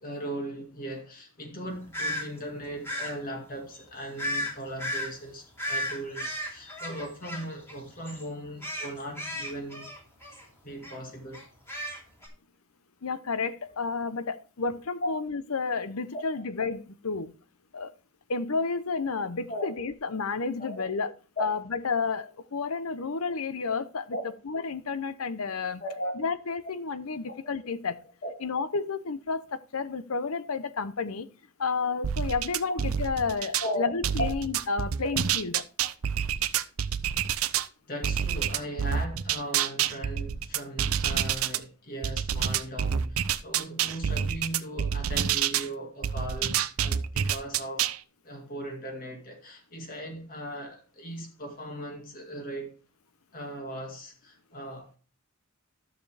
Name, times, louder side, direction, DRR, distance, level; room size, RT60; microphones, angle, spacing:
voice 1, 0.0-9.9 10.6-11.4 15.0-15.1 16.1-16.2 19.5-19.8 20.6-20.9 21.4-21.5 24.1-24.3 25.8-26.1 27.3-27.5 28.2-28.4 33.6-34.3 37.9-47.9 48.2-52.8 53.3-55.0, equal, 40° left, 2.1 m, -38 dB
sound 1, 1.9-2.2 2.8-3.1 4.2-4.5 4.8-5.1 5.6-7.8 8.1-8.2 8.6-10.4 10.8-11.0 11.3-12.3, equal, 10° left, 2.7 m, -34 dB
voice 2, 13.0-17.3 17.7-17.9 18.3-21.1 21.4-24.2 24.5-25.8 26.2-28.0 28.4-31.3 31.6-35.6, left 4 dB, 90° left, 0.8 m, -31 dB
sound 2, 32.0-33.7 34.0-37.7 38.0-41.6 42.0-45.7 46.0-48.0, right 8 dB, 85° right, 0.6 m, -28 dB
12.0 x 6.9 x 3.4 m
head